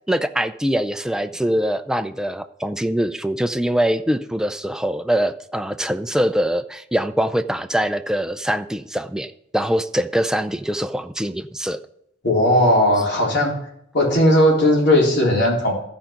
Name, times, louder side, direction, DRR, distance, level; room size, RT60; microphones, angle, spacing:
voice 1, 0.1-11.8, equal, 5° right, 9 dB, 0.4 m, -23 dB
voice 2, 12.2-13.5 13.9-15.7, left 1 dB, 65° left, -3 dB, 3.9 m, -17 dB
13.5 x 5.2 x 5.8 m, 0.73 s
head